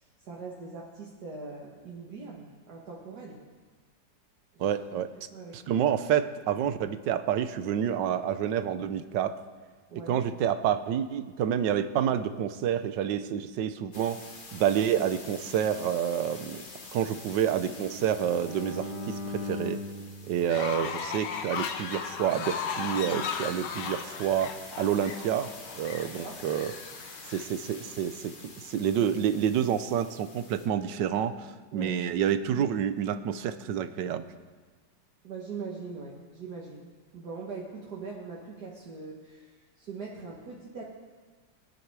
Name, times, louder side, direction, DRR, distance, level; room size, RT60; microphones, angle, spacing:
voice 1, 0.0-3.4 4.6-4.7 5.3-5.6 9.9-10.2 26.0-26.4 31.7-32.0 35.2-36.9 37.1-40.8, right 4 dB, 65° right, -3 dB, 2.1 m, -41 dB
voice 2, 4.6-5.1 5.5-9.4 10.1-14.2 14.5-16.6 16.9-19.8 20.3-26.7 27.3-34.2, right 9 dB, 80° right, 12 dB, 1.4 m, -28 dB
sound 1, 13.9-30.7, left 3 dB, 30° left, 1.3 m, -48 dB
Bowed string instrument, 17.2-21.3, left 2 dB, 50° left, 1.8 m, -40 dB
Fowl, 20.4-27.4, left 7 dB, 75° left, 1.6 m, -36 dB
21.0 x 10.0 x 4.8 m, 1.4 s
omnidirectional pair, 1.9 m